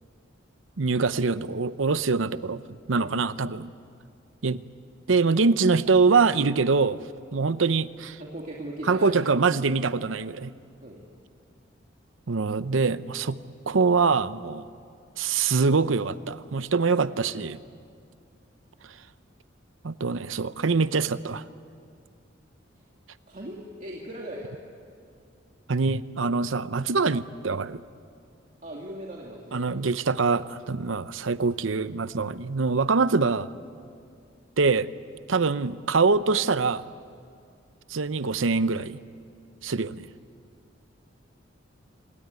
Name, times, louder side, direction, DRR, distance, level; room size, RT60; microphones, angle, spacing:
voice 1, 0.8-2.6 2.9-3.7 4.4-4.6 5.1-7.0 7.3-8.2 8.9-10.5 12.3-13.4 13.7-14.6 15.2-17.6 19.8-21.4 25.7-27.8 29.5-33.5 34.6-34.9 35.3-36.8 37.9-39.0 39.6-40.1, right 4 dB, 85° right, 14 dB, 0.7 m, -24 dB
voice 2, 8.2-9.2 10.8-11.0 23.3-24.5 28.6-29.8, right 1 dB, 40° right, -2 dB, 2.5 m, -39 dB
26.5 x 19.0 x 9.6 m, 2.3 s
head